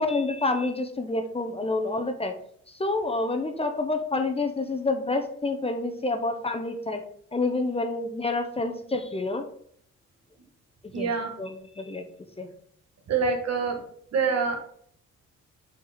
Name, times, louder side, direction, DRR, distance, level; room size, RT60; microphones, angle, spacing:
voice 1, 0.0-2.3 2.7-7.0 7.3-9.4 10.9-11.1 11.4-12.0 12.4-12.5, left 2 dB, 20° left, 5 dB, 0.7 m, -28 dB
voice 2, 10.9-11.3 13.1-13.8 14.1-14.7, right 5 dB, 60° right, 4 dB, 1.4 m, -26 dB
4.6 x 4.5 x 5.0 m, 0.64 s
cardioid pair, 90°, 30 cm